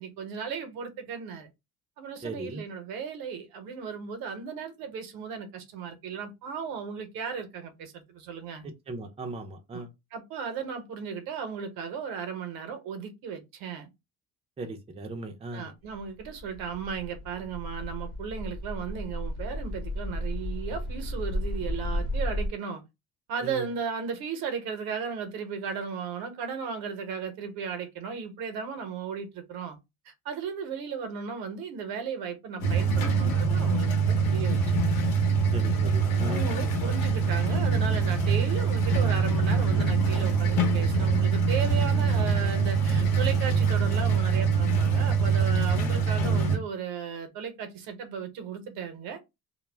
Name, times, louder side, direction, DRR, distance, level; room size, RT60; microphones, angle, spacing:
voice 1, 0.0-1.5 2.0-8.7 9.7-9.8 10.1-13.9 15.5-22.8 23.3-29.8 30.1-34.8 36.3-49.2, right 6 dB, 80° right, 0.8 m, -35 dB
voice 2, 2.2-2.6 8.6-9.9 14.6-15.7 23.4-23.7 35.5-36.4, right 2 dB, 15° right, 0.5 m, -37 dB
sound 1, 15.9-22.5, left 1 dB, 40° left, 0.9 m, -33 dB
sound 2, 32.6-46.6, right 5 dB, 80° left, 0.9 m, -24 dB
2.2 x 2.0 x 3.2 m
cardioid pair, 105°, 35 cm